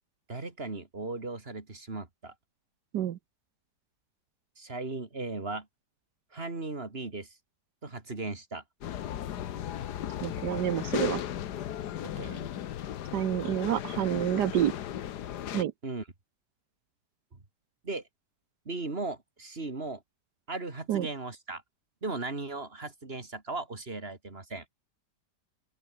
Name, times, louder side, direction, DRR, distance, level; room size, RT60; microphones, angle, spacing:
voice 1, 0.3-2.3 4.6-5.7 6.3-7.4 7.8-8.6 12.0-12.5 15.8-16.0 17.8-18.0 18.6-20.0 20.5-21.6 22.0-24.6, right 3 dB, 35° right, 3.1 m, -37 dB
sound 1, 8.8-15.6, left 11 dB, 75° left, 1.5 m, -36 dB
voice 2, 10.2-11.2 13.1-14.7 15.5-15.7 20.9-21.1, right 11 dB, 75° right, 1.5 m, -28 dB
open air
omnidirectional pair, 1.8 m